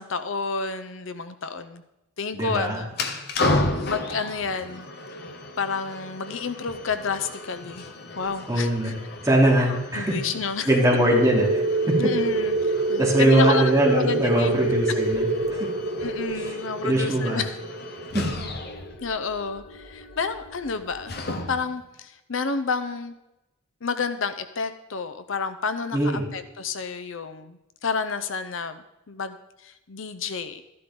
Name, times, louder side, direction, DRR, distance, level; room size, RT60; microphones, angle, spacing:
voice 1, 0.0-1.8 2.2-2.9 3.4-4.9 5.6-7.9 8.1-8.9 9.7-10.7 12.0-14.6 16.0-17.6 19.0-21.2 21.5-23.1 23.8-29.4 29.6-30.6, left 5 dB, 70° left, 11 dB, 0.7 m, -30 dB
voice 2, 2.3-2.8 8.5-8.9 9.2-10.2 10.7-12.0 13.0-15.7 16.8-17.4 18.1-18.2 25.9-26.2, right 1 dB, 15° right, -5 dB, 3.3 m, -21 dB
sound 1, 2.9-21.8, left 2 dB, 50° left, 1.1 m, -34 dB
sound 2, 11.1-19.5, right 3 dB, 75° right, 1.5 m, -27 dB
13.0 x 11.5 x 3.8 m, 0.93 s
head